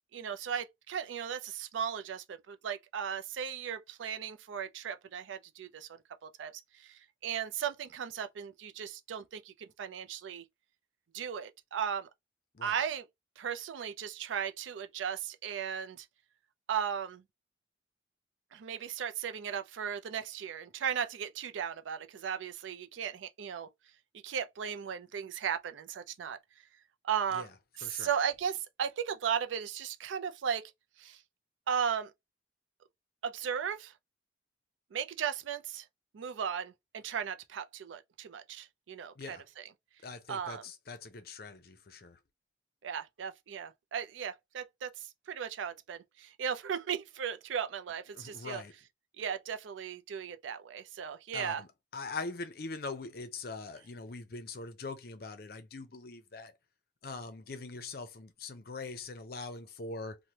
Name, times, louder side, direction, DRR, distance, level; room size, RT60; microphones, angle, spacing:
voice 1, 0.1-5.9 6.2-10.4 11.1-12.1 12.6-13.0 13.4-16.1 16.7-17.2 18.5-23.7 24.2-26.4 27.0-27.5 27.8-30.7 31.0-31.2 31.7-32.1 33.2-33.9 34.9-35.8 36.1-39.4 40.3-40.6 42.8-48.6 49.2-51.6, right 8 dB, 85° right, 0.4 m, -36 dB
voice 2, 40.0-42.2 48.1-48.7 51.3-56.5 57.0-60.2, left 3 dB, 55° left, 0.6 m, -42 dB
3.1 x 2.1 x 2.7 m
head